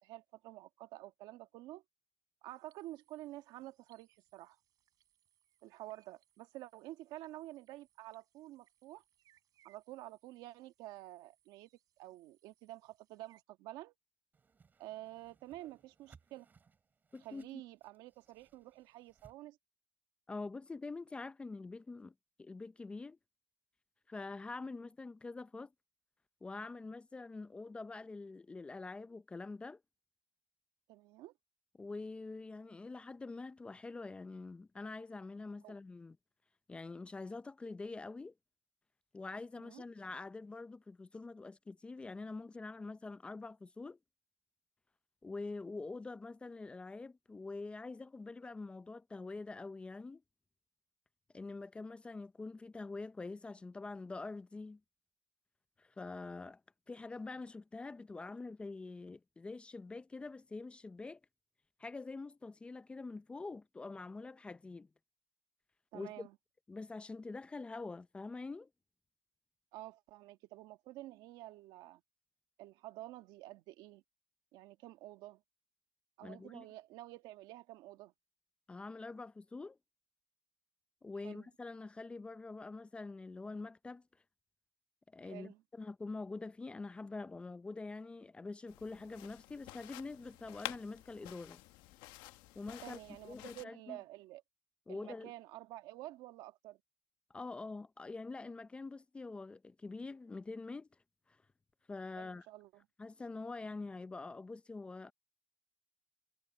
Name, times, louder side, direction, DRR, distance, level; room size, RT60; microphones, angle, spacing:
voice 1, 0.0-1.8 2.4-4.6 5.6-9.0 9.6-11.7 12.0-13.9 14.8-16.5 17.2-19.6 30.9-31.3 35.6-35.7 39.6-39.8 65.9-66.4 69.7-72.0 72.6-74.0 74.5-75.4 76.2-78.1 81.2-81.5 85.3-85.6 92.8-94.4 94.9-96.8 102.1-102.9, right 16 dB, 75° right, 1.5 m, -50 dB
sound 1, 2.5-13.4, right 12 dB, 55° right, 7.2 m, -75 dB
Whoosh swoosh swish, 14.3-19.4, right 5 dB, 25° right, 3.5 m, -66 dB
voice 2, 17.1-17.6 20.3-22.1 22.4-23.2 24.1-25.7 26.4-29.8 31.8-36.2 36.7-38.3 39.1-44.0 45.2-50.2 51.3-54.8 55.8-56.6 56.9-61.2 61.8-64.9 65.9-66.3 66.7-68.7 76.2-76.7 78.7-79.8 81.0-84.0 85.1-91.6 92.5-93.0 93.2-94.0 94.9-95.3 97.3-100.9 101.3-101.4 101.9-102.5 103.0-105.1, left 3 dB, 15° left, 0.5 m, -45 dB
sound 2, 88.7-93.6, left 17 dB, 85° left, 1.1 m, -50 dB
cardioid pair, 140°, 7 cm